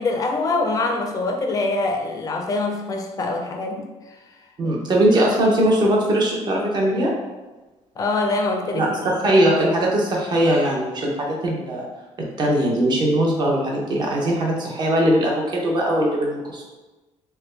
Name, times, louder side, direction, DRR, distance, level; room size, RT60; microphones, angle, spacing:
voice 1, 0.0-4.3 8.0-9.4, left 3 dB, 30° left, 3 dB, 0.4 m, -25 dB
voice 2, 4.6-7.1 8.7-11.9 12.4-16.6, right 1 dB, 35° right, -2 dB, 0.7 m, -20 dB
3.3 x 2.2 x 3.1 m, 1.2 s
cardioid pair, 155°, 12 cm